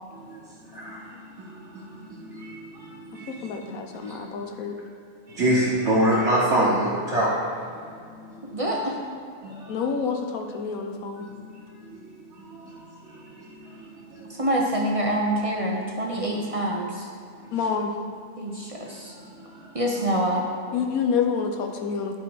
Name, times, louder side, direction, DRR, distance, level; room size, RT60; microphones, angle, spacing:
voice 1, 0.1-3.7 4.0-4.2 5.3-7.4 7.7-8.5 9.4-9.9 11.2-14.4 16.3-16.4 17.4-17.5 18.8-20.0, right 1 dB, 60° right, -8 dB, 1.4 m, -28 dB
voice 2, 3.4-4.7 9.7-11.3 17.5-17.9 20.7-22.2, left 6 dB, 85° left, 4 dB, 1.3 m, -28 dB
voice 3, 8.5-8.9 14.4-17.0 18.4-19.1 19.7-20.4, right 1 dB, 30° right, -2 dB, 0.7 m, -26 dB
11.0 x 4.7 x 4.7 m, 2.4 s
omnidirectional pair, 1.4 m